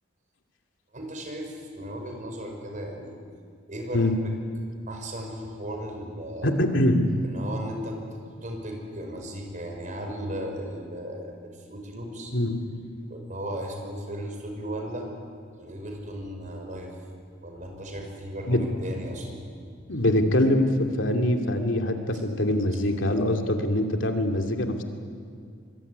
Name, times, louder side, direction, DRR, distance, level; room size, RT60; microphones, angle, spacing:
voice 1, 0.9-3.2 3.7-4.1 4.9-6.5 7.2-12.3 13.1-15.1 15.6-16.9 17.4-19.4, equal, 40° right, 2 dB, 5.7 m, -36 dB
voice 2, 6.4-7.0 12.3-12.6 18.5-18.6 19.9-24.8, left 1 dB, 70° left, 3 dB, 2.7 m, -23 dB
25.0 x 24.0 x 9.7 m, 2.2 s
head